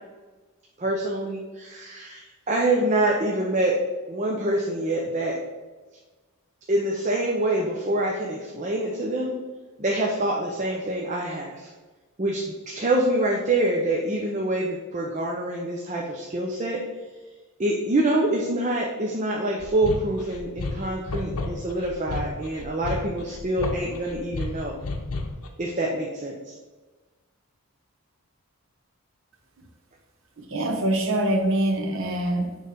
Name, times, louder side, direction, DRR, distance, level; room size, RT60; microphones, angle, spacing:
voice 1, 0.8-3.8 4.1-5.4 6.7-9.3 9.8-11.7 12.2-16.8 17.6-24.8 25.6-26.5, right 1 dB, 30° right, -1 dB, 0.6 m, -26 dB
sound 1, 19.6-25.5, left 3 dB, 75° left, 0.8 m, -32 dB
voice 2, 30.4-32.6, right 1 dB, 55° right, 3 dB, 0.9 m, -24 dB
6.7 x 3.2 x 5.0 m, 1.3 s
head